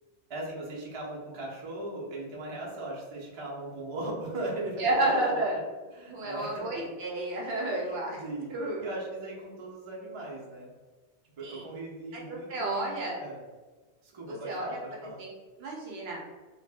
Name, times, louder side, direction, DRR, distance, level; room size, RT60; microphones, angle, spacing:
voice 1, 0.3-5.4 5.9-6.9 7.8-8.5 8.8-10.7 11.4-13.4 14.0-15.2, right 2 dB, 40° right, -4 dB, 0.5 m, -38 dB
voice 2, 4.8-5.6 6.1-8.2 8.5-8.8 11.4-11.6 12.1-13.2 14.3-15.3 15.6-16.2, right 1 dB, 65° right, -2 dB, 0.8 m, -31 dB
2.1 x 2.1 x 3.3 m, 1.3 s
omnidirectional pair, 1.2 m